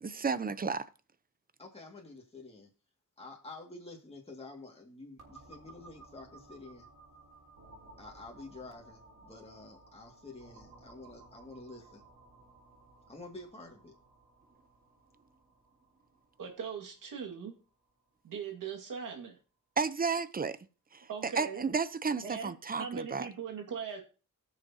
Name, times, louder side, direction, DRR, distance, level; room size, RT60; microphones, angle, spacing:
voice 1, 0.0-0.9 19.8-20.6 20.9-23.3, right 5 dB, 30° right, 0.7 m, -32 dB
voice 2, 1.6-2.7 3.2-6.9 8.0-12.0 13.1-13.9, left 2 dB, 20° left, 2.2 m, -49 dB
sound 1, 5.2-18.7, right 2 dB, 65° right, 3.5 m, -57 dB
voice 3, 16.4-17.6 18.2-19.4 21.1-21.6 22.2-22.5 22.8-24.0, right 6 dB, 85° right, 2.1 m, -40 dB
18.5 x 6.5 x 2.9 m
cardioid pair, 85°, 32 cm